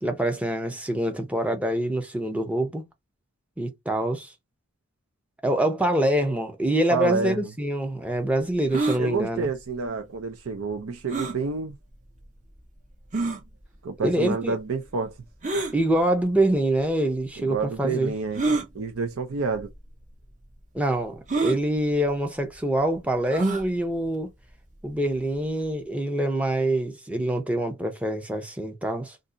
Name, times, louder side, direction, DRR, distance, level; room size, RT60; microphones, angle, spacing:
voice 1, 0.0-2.8 3.6-4.3 5.4-9.5 14.0-14.5 15.7-18.2 20.7-24.3 24.8-29.2, right 1 dB, 5° right, 0.7 m, -25 dB
voice 2, 6.9-7.5 9.0-11.7 13.8-15.1 17.4-18.4 18.7-19.7, right 4 dB, 70° right, 0.6 m, -29 dB
sound 1, 8.7-9.0 11.1-11.4 12.2-12.3 13.1-13.4 15.4-15.7 16.8-16.9 18.3-18.7 19.6-19.7 20.0-20.1 21.3-21.6 23.3-23.7, right 3 dB, 35° right, 0.9 m, -26 dB
2.6 x 2.4 x 3.8 m
head